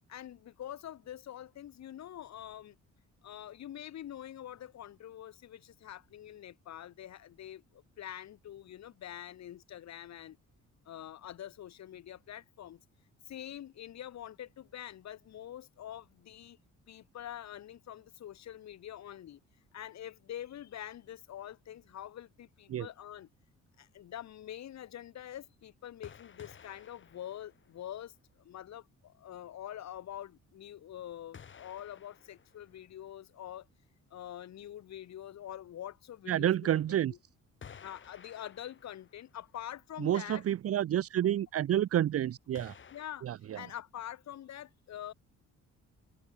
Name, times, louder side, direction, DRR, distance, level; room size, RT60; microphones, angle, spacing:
voice 1, 0.1-2.8 3.2-10.4 10.8-12.8 13.2-16.6 16.9-19.4 19.7-23.3 23.8-33.7 34.1-36.8 37.1-37.2 37.8-40.4 42.9-43.3 43.5-45.1, left 11 dB, 60° left, 1.4 m, -45 dB
sound 1, 26.0-28.2 28.6-28.7 31.3-33.2 36.1-36.2 37.6-39.5 39.9-40.0 42.6-43.1, left 7 dB, 40° left, 1.7 m, -54 dB
voice 2, 36.3-37.1 40.0-42.8 43.2-43.6, right 11 dB, 50° right, 0.7 m, -29 dB
cardioid pair, 90°, 30 cm